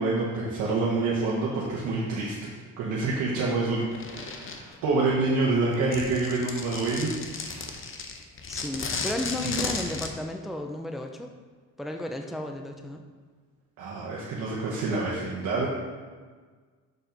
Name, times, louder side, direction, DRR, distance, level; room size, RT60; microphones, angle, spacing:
voice 1, 0.0-7.8 13.8-15.7, right 3 dB, 85° right, -5 dB, 1.2 m, -27 dB
sound 1, 3.9-4.8 5.7-10.1, left 4 dB, 45° left, 0.8 m, -34 dB
voice 2, 8.5-11.3 11.8-13.0, left 1 dB, ahead, 4 dB, 0.5 m, -33 dB
6.6 x 4.4 x 5.2 m, 1.5 s
cardioid pair, 90°, 30 cm